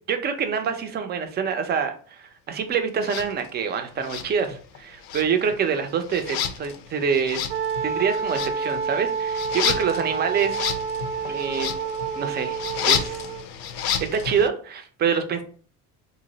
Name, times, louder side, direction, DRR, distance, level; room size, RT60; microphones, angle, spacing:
voice 1, 0.1-7.4 7.8-10.6 11.2-11.7 12.2-13.2 13.8-15.4, right 6 dB, 25° right, 7 dB, 0.4 m, -26 dB
sound 1, 3.0-3.3 4.0-4.8 5.0-14.5, left 8 dB, 85° left, 0.5 m, -31 dB
Wind instrument woodwind instrument, 7.5-13.5, right 6 dB, 70° right, 0.6 m, -29 dB
2.7 x 2.0 x 3.8 m, 0.43 s
cardioid pair, 125°, 37 cm